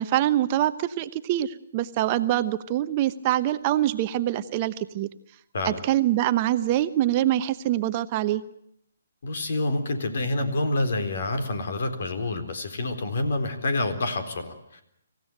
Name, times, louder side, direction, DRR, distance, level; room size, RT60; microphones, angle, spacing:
voice 1, 0.0-5.1 5.6-8.4, right 13 dB, 35° right, 11 dB, 1.0 m, -24 dB
voice 2, 9.2-14.8, left 2 dB, 60° left, 8 dB, 4.0 m, -27 dB
26.5 x 16.0 x 9.1 m, 0.72 s
hypercardioid pair, 145°, 0 cm